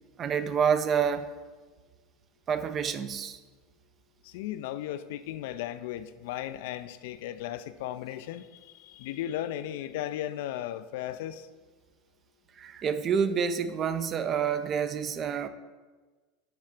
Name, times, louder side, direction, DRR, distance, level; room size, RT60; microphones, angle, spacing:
voice 1, 0.2-1.3 2.5-3.4 12.6-15.5, right 7 dB, 40° right, 11 dB, 0.5 m, -28 dB
voice 2, 4.2-11.5, left 12 dB, 70° left, 12 dB, 0.3 m, -36 dB
9.1 x 3.2 x 4.9 m, 1.3 s
hypercardioid pair, 90°, 0 cm